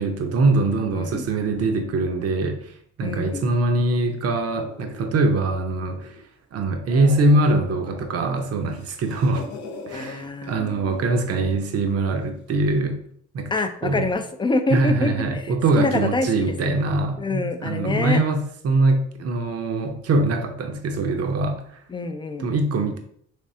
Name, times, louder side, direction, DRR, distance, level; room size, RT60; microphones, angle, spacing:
voice 1, 0.0-2.6 3.0-6.1 6.5-9.4 9.9-13.0 13.3-13.5 13.8-14.1 14.7-21.6 22.4-23.0, right 2 dB, 55° right, 5 dB, 0.7 m, -22 dB
voice 2, 3.0-3.5 9.9-10.8 13.5-16.3 16.6-16.7 17.2-18.2 21.9-22.5, left 3 dB, 15° left, 8 dB, 0.4 m, -26 dB
sound 1, 4.5-6.3 6.7-8.4 8.7-10.1 10.9-11.7, left 3 dB, 70° left, 0.8 m, -41 dB
3.4 x 3.2 x 2.7 m, 0.63 s
cardioid pair, 90°, 30 cm